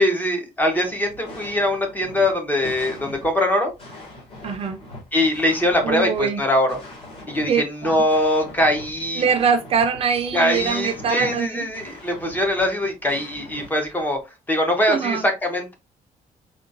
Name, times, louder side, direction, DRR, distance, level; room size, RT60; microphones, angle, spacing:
voice 1, 0.0-3.7 5.1-6.8 7.3-7.5 7.8-9.2 10.3-14.2 14.5-15.7, left 1 dB, 10° left, 0.6 m, -22 dB
sound 1, 0.6-14.2, left 1 dB, 40° left, 1.5 m, -41 dB
voice 2, 4.4-4.8 5.8-6.4 7.5-8.0 9.1-11.7 14.9-15.2, right 6 dB, 40° right, 0.4 m, -23 dB
3.7 x 2.2 x 2.5 m
cardioid pair, 175°, 15 cm